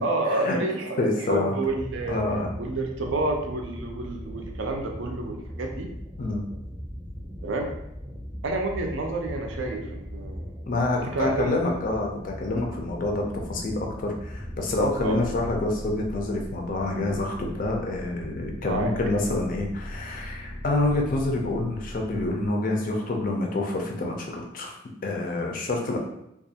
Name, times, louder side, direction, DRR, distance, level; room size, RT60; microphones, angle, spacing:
voice 1, 0.0-2.2 2.6-5.9 7.4-7.7 8.4-10.5 11.0-11.8 15.0-15.2 16.7-16.8 17.4-17.5 18.6-18.9, right 2 dB, 70° right, 2 dB, 0.4 m, -29 dB
voice 2, 1.0-1.5 2.1-2.5 6.2-6.4 10.7-24.7 25.0-26.0, left 2 dB, 45° left, 1 dB, 0.4 m, -27 dB
sound 1, 1.6-15.6, equal, 15° right, 0.6 m, -39 dB
sound 2, 14.3-22.5, equal, 85° left, 0.6 m, -39 dB
2.4 x 2.2 x 2.7 m, 0.83 s
head